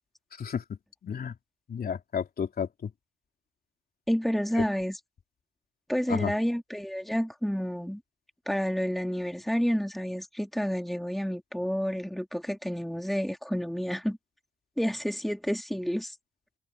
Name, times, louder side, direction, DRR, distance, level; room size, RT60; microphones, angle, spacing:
voice 1, 0.3-1.3 1.7-2.9 4.6-4.7 6.1-6.3, left 7 dB, 50° left, 3.4 m, -32 dB
voice 2, 4.1-5.0 5.9-8.0 8.5-14.2 14.8-16.1, equal, ahead, 2.6 m, -29 dB
cardioid pair, 90°, 20 cm